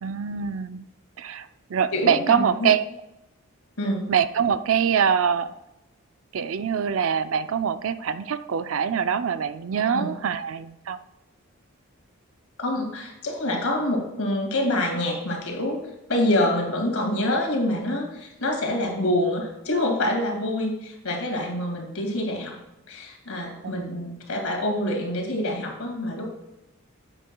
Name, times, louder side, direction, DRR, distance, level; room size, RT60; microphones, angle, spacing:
voice 1, 0.0-0.8 1.2-2.8 4.1-5.5 6.3-11.0 23.6-24.1, right 7 dB, 65° right, 12 dB, 0.4 m, -24 dB
voice 2, 1.9-2.7 3.8-4.1 9.9-10.1 12.6-15.8 16.1-22.6 22.9-26.3, left 1 dB, 80° left, 2 dB, 2.2 m, -26 dB
10.0 x 7.9 x 2.3 m, 0.93 s
head